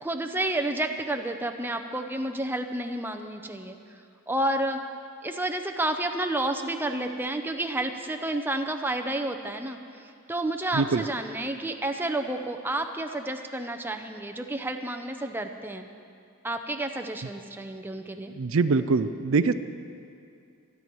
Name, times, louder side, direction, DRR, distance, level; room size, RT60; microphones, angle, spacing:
voice 1, 0.0-3.8 4.3-4.8 5.2-15.9 16.4-18.3, right 1 dB, 10° right, 5 dB, 0.7 m, -30 dB
voice 2, 10.7-11.0 18.4-19.5, right 4 dB, 65° right, 12 dB, 0.5 m, -23 dB
26.5 x 9.7 x 4.6 m, 2.5 s
head